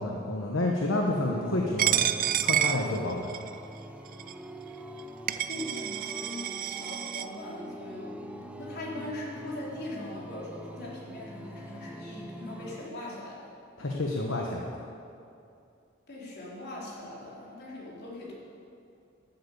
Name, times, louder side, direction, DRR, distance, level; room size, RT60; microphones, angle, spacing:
voice 1, 0.0-2.1 2.4-3.3 13.8-14.7, left 1 dB, 70° left, -1 dB, 1.2 m, -29 dB
sound 1, 1.1-12.9, right 1 dB, 5° right, 0.7 m, -44 dB
Coin (dropping), 1.8-3.5 4.2-4.3 5.0-5.1 5.3-7.2, right 11 dB, 45° right, 0.4 m, -29 dB
voice 2, 5.3-8.2 8.6-13.5 16.1-18.3, left 1 dB, 55° left, -5 dB, 3.8 m, -40 dB
12.5 x 8.3 x 8.3 m, 2.5 s
head